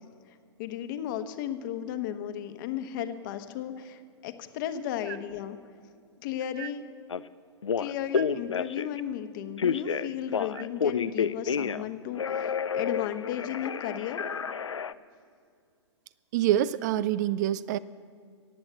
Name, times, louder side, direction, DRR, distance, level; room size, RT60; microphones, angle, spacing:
voice 1, 0.6-5.6 6.2-6.8 7.8-14.2, left 10 dB, 45° left, 9 dB, 1.2 m, -34 dB
Telephone, 7.1-7.2 7.6-9.0 9.6-11.9 12.2-14.9, left 6 dB, 80° left, 0.5 m, -30 dB
voice 2, 16.3-17.8, right 12 dB, 40° right, 17 dB, 0.4 m, -26 dB
15.5 x 8.6 x 8.0 m, 2.3 s
figure-of-eight pair, 110°, 15 cm